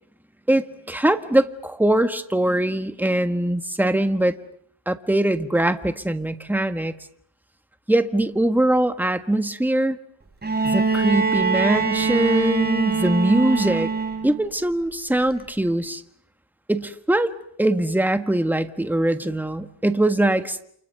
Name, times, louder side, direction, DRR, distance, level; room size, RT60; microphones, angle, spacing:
voice 1, 0.5-4.3 4.9-6.9 7.9-10.0 10.6-13.9 14.2-16.0 16.7-17.3 17.6-20.6, right 1 dB, 5° right, 9 dB, 1.5 m, -22 dB
Bowed string instrument, 10.4-14.4 15.7-15.8, right 4 dB, 20° right, 4.1 m, -23 dB
29.0 x 28.0 x 6.7 m, 0.68 s
wide cardioid pair, 125°, 44 cm